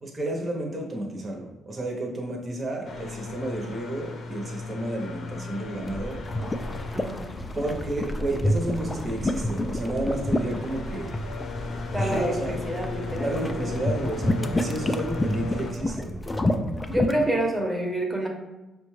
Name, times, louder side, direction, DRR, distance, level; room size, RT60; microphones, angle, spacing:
voice 1, 0.0-6.2 7.5-11.1 12.0-12.5 13.2-16.1, right 1 dB, 35° right, -1 dB, 0.8 m, -31 dB
sound 1, 2.8-15.7, left 3 dB, 60° left, 0.6 m, -37 dB
sound 2, 5.8-17.1, left 1 dB, 20° left, 0.3 m, -29 dB
voice 2, 6.9-7.2 11.9-13.7 16.9-18.3, right 1 dB, 5° right, 0 dB, 0.8 m, -28 dB
4.9 x 2.3 x 3.1 m, 1.0 s
cardioid pair, 90°, 0 cm